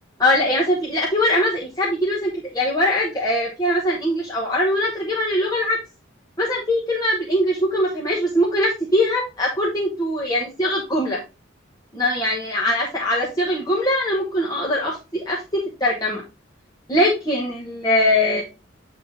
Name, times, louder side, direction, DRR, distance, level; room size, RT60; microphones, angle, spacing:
voice 1, 0.2-5.8 6.4-11.2 11.9-16.2 16.9-18.4, left 1 dB, 20° left, -4 dB, 1.2 m, -21 dB
8.5 x 3.7 x 3.7 m, 0.30 s
head